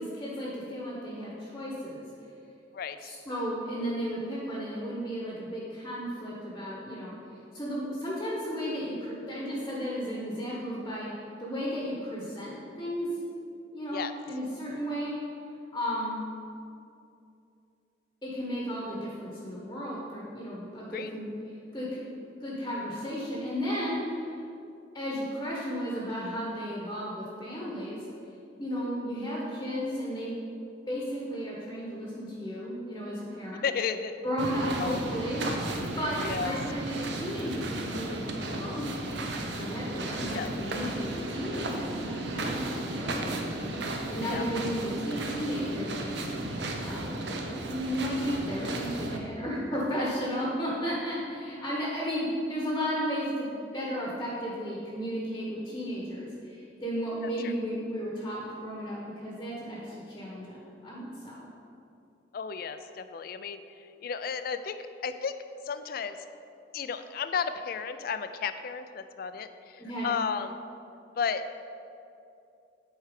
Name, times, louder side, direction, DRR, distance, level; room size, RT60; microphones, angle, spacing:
voice 1, 0.0-2.0 3.0-7.1 7.5-13.1 13.7-15.1 15.7-16.2 18.2-21.3 21.7-22.0 22.4-24.3 24.9-28.0 28.6-30.4 30.9-33.6 34.2-35.7 36.0-43.5 43.8-46.2 46.8-47.2 47.7-61.5 69.8-70.1, equal, 20° left, -5 dB, 1.0 m, -34 dB
voice 2, 2.7-3.1 13.9-14.1 20.9-21.1 33.6-34.1 34.6-35.0 36.2-36.5 40.3-40.5 44.2-44.4 57.4-57.5 62.3-65.4 65.6-66.2 66.7-70.6 71.2-71.4, left 6 dB, 55° left, 10 dB, 0.4 m, -33 dB
sound 1, 34.4-49.2, right 2 dB, 65° right, 0.7 m, -34 dB
8.1 x 4.5 x 5.0 m, 2.7 s
head